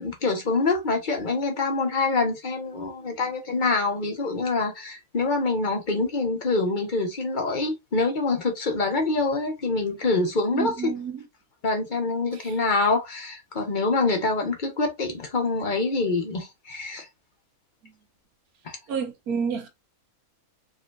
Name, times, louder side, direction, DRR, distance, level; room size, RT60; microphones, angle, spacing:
voice 1, 0.0-10.9 11.6-17.1 18.6-18.8, left 3 dB, 35° left, 1.1 m, -25 dB
voice 2, 10.5-11.1 18.9-19.7, right 6 dB, 70° right, 1.5 m, -29 dB
4.9 x 2.8 x 2.4 m
omnidirectional pair, 1.6 m